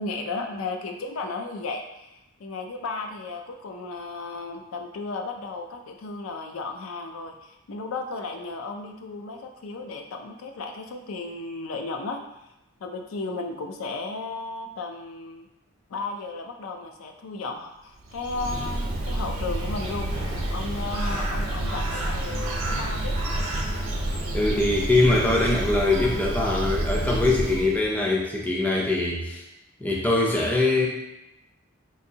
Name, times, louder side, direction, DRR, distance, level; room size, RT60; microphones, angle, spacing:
voice 1, 0.0-2.1 2.4-12.2 12.8-15.5 15.9-20.1 20.5-23.2, left 3 dB, 80° left, 4 dB, 0.4 m, -34 dB
Bird, 18.0-28.0, right 1 dB, 80° right, 0.6 m, -29 dB
sound 1, 19.6-24.5, equal, 50° left, 1.1 m, -44 dB
voice 2, 24.3-29.4 29.8-30.9, left 2 dB, 10° left, -3 dB, 0.4 m, -22 dB
3.8 x 2.6 x 2.7 m, 0.91 s
head